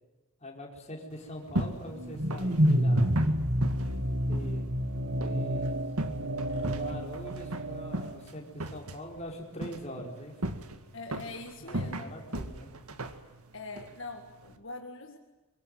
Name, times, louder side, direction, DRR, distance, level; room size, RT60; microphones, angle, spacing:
voice 1, 0.4-3.1 4.2-4.8 5.1-5.8 6.3-10.7 11.6-12.7, equal, 30° left, 1 dB, 4.7 m, -43 dB
sound 1, 1.1-14.6, right 1 dB, 85° right, 2.0 m, -38 dB
sound 2, 1.9-8.2, equal, 60° right, 1.8 m, -29 dB
voice 2, 10.9-12.2 13.5-15.2, left 3 dB, 60° left, 4 dB, 1.9 m, -43 dB
24.0 x 23.5 x 9.4 m, 1.2 s
head